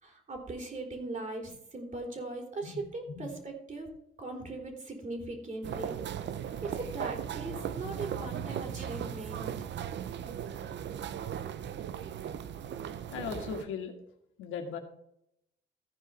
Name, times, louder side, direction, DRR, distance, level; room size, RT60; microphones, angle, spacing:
voice 1, 0.0-3.9 4.2-6.0 6.6-9.5, right 2 dB, 40° right, 3 dB, 3.6 m, -39 dB
sound 1, 5.6-13.6, right 9 dB, 65° right, 0.8 m, -37 dB
voice 2, 13.1-13.9 14.4-14.8, left 6 dB, 85° left, 5 dB, 1.8 m, -37 dB
14.5 x 5.0 x 5.6 m, 0.78 s
cardioid pair, 90°, 20 cm